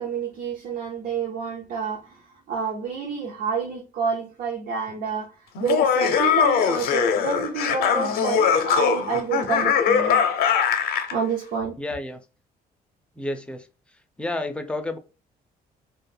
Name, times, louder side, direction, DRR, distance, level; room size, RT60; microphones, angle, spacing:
voice 1, 0.0-5.3 5.6-10.2 11.1-11.7, right 5 dB, 70° right, 0.7 m, -28 dB
Laughter, 5.6-11.1, left 7 dB, 80° left, 0.5 m, -21 dB
voice 2, 11.8-12.2 13.2-13.7 14.2-15.0, left 2 dB, 5° left, 0.3 m, -30 dB
2.2 x 2.0 x 3.3 m
cardioid pair, 125°, 16 cm